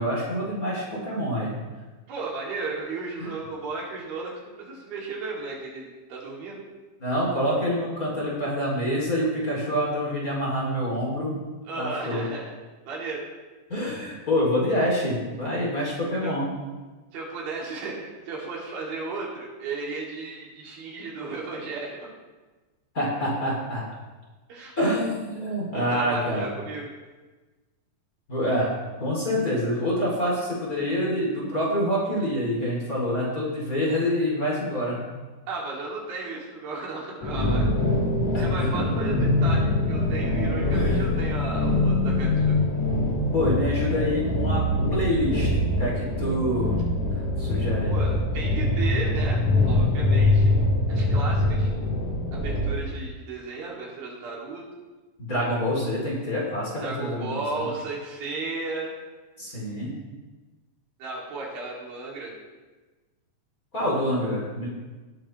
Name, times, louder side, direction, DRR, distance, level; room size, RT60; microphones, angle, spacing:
voice 1, 0.0-1.5 3.2-3.3 7.0-11.3 11.8-12.2 13.7-16.5 22.9-23.8 24.8-26.5 28.3-28.7 29.0-35.1 38.3-38.7 40.7-41.0 43.3-44.6 44.9-46.8 47.4-48.0 55.2-57.7 59.4-60.0 63.7-64.7, equal, 25° left, -5 dB, 2.6 m, -26 dB
voice 2, 2.1-6.6 11.7-12.5 12.8-13.2 16.2-16.3 17.1-21.9 24.5-24.7 25.7-26.9 35.5-37.7 38.4-42.6 47.9-49.4 49.7-50.6 50.9-51.7 52.3-54.7 56.8-58.9 61.0-62.3, right 3 dB, 90° right, -4 dB, 4.3 m, -34 dB
sound 1, 37.2-52.7, left 2 dB, 55° left, 2.9 m, -23 dB
17.5 x 8.8 x 3.1 m, 1.2 s
omnidirectional pair, 4.1 m